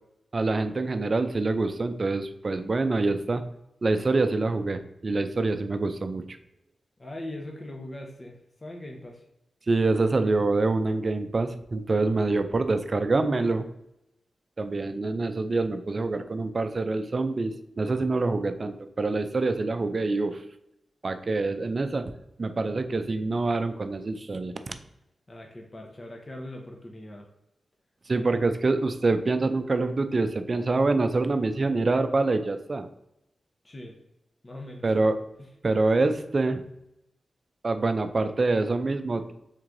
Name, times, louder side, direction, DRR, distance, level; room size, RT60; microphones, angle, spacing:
voice 1, 0.3-3.4 3.8-6.4 9.7-13.7 14.6-20.4 21.0-22.1 22.4-24.7 28.1-32.9 34.8-35.2 35.6-36.6 37.6-39.3, right 3 dB, 45° right, 9 dB, 0.4 m, -26 dB
voice 2, 7.0-9.2 25.3-27.3 33.6-34.0 34.4-35.0, left 1 dB, 30° left, 1 dB, 0.7 m, -40 dB
3.6 x 3.2 x 3.7 m, 0.86 s
cardioid pair, 70°, 0 cm